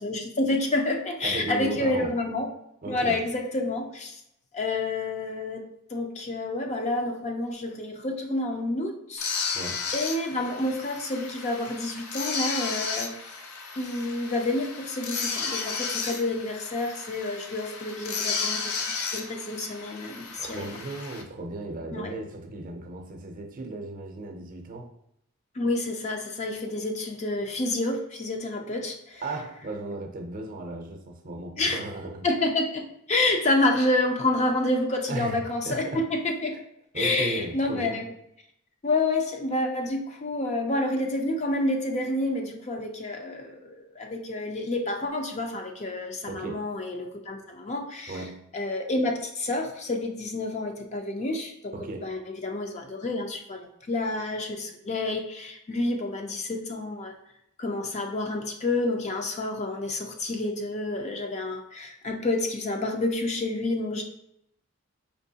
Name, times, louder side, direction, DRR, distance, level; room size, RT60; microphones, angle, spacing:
voice 1, 0.0-2.5 2.9-4.2 4.5-9.3 9.9-13.3 13.8-20.6 21.9-22.1 25.6-29.2 31.6-31.8 32.2-36.6 36.9-38.0 38.8-48.2 48.5-51.7 52.0-57.1 57.6-64.0, left 2 dB, 30° left, 3 dB, 0.4 m, -29 dB
voice 2, 1.2-2.1 2.8-3.3 9.5-9.8 20.4-24.9 29.2-32.3 35.1-36.1 36.9-38.0 46.3-46.7 48.1-48.4 51.7-52.1, right 2 dB, 40° right, 3 dB, 0.6 m, -35 dB
sound 1, 9.2-21.2, left 5 dB, 85° left, 0.5 m, -33 dB
4.5 x 2.9 x 2.8 m, 0.78 s
head